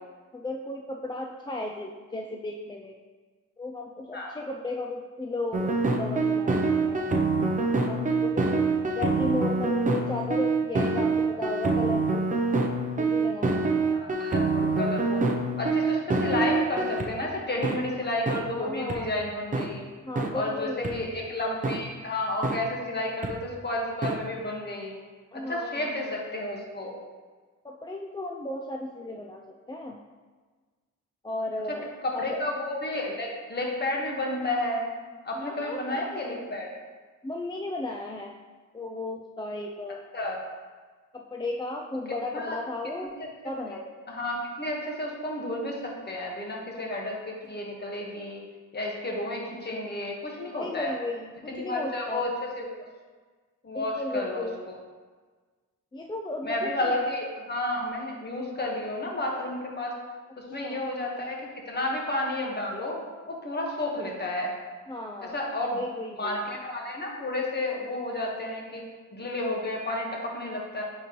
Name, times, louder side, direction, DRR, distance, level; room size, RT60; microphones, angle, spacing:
voice 1, 0.3-3.0 3.6-7.2 7.8-8.6 8.9-12.3 13.0-14.0 18.5-19.1 20.0-21.2 25.3-26.2 27.6-30.0 31.2-32.4 35.3-35.9 37.2-38.3 38.7-40.0 41.1-43.2 43.4-43.8 50.5-52.3 53.7-54.6 55.9-56.9 60.6-60.9 64.9-65.4 65.7-66.4 70.8-70.9, left 2 dB, 15° left, 1 dB, 0.4 m, -35 dB
sound 1, 5.5-17.1 17.6-17.8 18.3-18.4 18.9-19.0 19.5-19.7 20.2-20.3 20.8-20.9 21.6-21.8 22.4-22.6 23.2-23.3 24.0-24.2, right 3 dB, 25° right, 0.6 m, -25 dB
voice 2, 13.9-15.3 15.6-19.8 20.3-24.9 25.3-26.9 32.0-34.9 35.2-36.7 40.1-40.4 42.3-42.6 43.2-43.3 43.7-43.8 44.1-48.4 48.7-50.9 51.5-52.7 53.6-54.5 56.4-59.9 60.4-63.0 63.3-64.5 65.3-65.8 66.2-68.8 69.1-70.8, left 1 dB, 30° left, -1 dB, 1.4 m, -31 dB
8.9 x 4.5 x 3.1 m, 1.4 s
cardioid pair, 110°, 32 cm